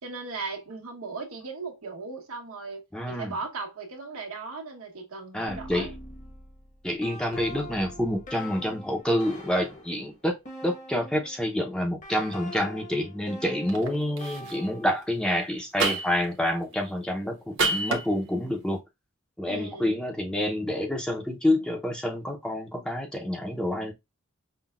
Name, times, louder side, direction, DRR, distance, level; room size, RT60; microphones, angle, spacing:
voice 1, 0.0-5.9 19.4-20.1, right 4 dB, 90° right, 1.2 m, -37 dB
voice 2, 2.9-3.3 5.3-5.9 6.8-10.3 10.6-18.8 19.4-23.9, left 1 dB, 5° left, 0.6 m, -28 dB
sound 1, 5.5-11.4 12.0-15.2, left 1 dB, 35° left, 1.1 m, -43 dB
sound 2, 13.7-13.9 14.2-14.5 15.8-16.3 17.6-18.1, right 3 dB, 60° right, 0.9 m, -26 dB
5.6 x 2.2 x 2.3 m
head